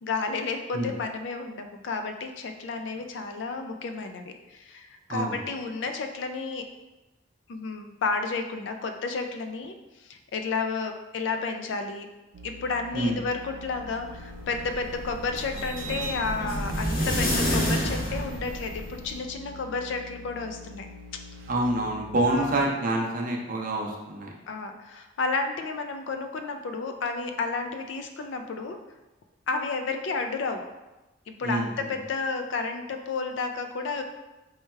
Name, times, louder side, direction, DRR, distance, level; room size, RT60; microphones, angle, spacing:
voice 1, 0.0-6.7 7.5-9.8 10.0-12.1 12.4-20.9 22.3-22.6 24.5-28.8 29.5-30.6 31.3-34.0, left 4 dB, 65° left, 6 dB, 0.4 m, -31 dB
voice 2, 5.1-5.4 12.9-13.2 21.5-24.3 31.4-31.9, right 1 dB, 45° right, -1 dB, 0.6 m, -27 dB
sound 1, 12.3-22.6, left 3 dB, 85° right, 0.4 m, -45 dB
sound 2, 14.1-19.2, equal, 50° left, 0.8 m, -29 dB
3.2 x 2.2 x 4.3 m, 1.0 s
head